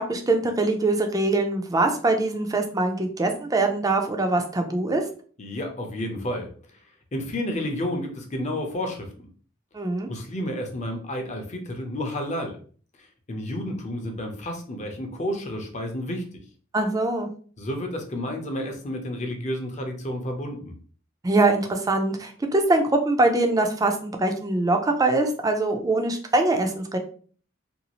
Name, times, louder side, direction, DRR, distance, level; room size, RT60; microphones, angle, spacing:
voice 1, 0.0-5.0 9.7-10.1 16.7-17.3 21.2-27.0, right 2 dB, 20° right, 4 dB, 0.4 m, -23 dB
voice 2, 5.4-6.5 7.1-9.3 10.1-12.6 13.3-16.3 17.6-20.7, left 1 dB, 35° left, 3 dB, 0.6 m, -31 dB
2.6 x 2.4 x 2.9 m, 0.44 s
head